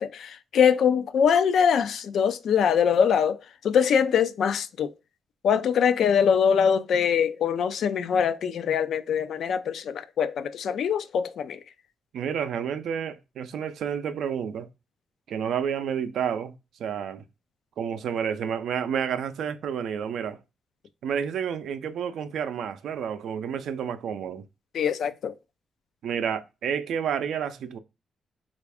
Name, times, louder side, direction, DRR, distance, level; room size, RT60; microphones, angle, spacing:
voice 1, 0.0-4.9 5.4-11.6 24.7-25.3, left 7 dB, 75° left, 0.4 m, -23 dB
voice 2, 12.1-14.7 15.3-16.5 16.8-17.2 17.8-20.4 21.0-24.4 26.0-27.8, right 8 dB, 80° right, 0.4 m, -30 dB
3.4 x 2.5 x 3.3 m
cardioid pair, 65°, 0 cm